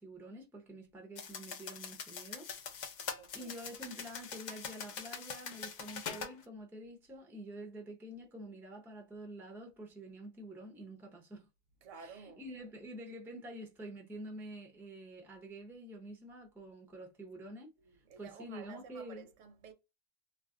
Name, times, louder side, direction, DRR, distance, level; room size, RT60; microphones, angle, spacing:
voice 1, 0.0-2.5 3.3-11.5 12.0-17.7 18.2-19.3, right 1 dB, 5° right, 0.5 m, -48 dB
sound 1, 1.2-6.3, left 6 dB, 65° left, 0.4 m, -43 dB
voice 2, 3.2-3.5 11.8-12.5 17.8-19.7, right 5 dB, 85° right, 1.0 m, -52 dB
2.5 x 2.3 x 3.6 m
omnidirectional pair, 1.3 m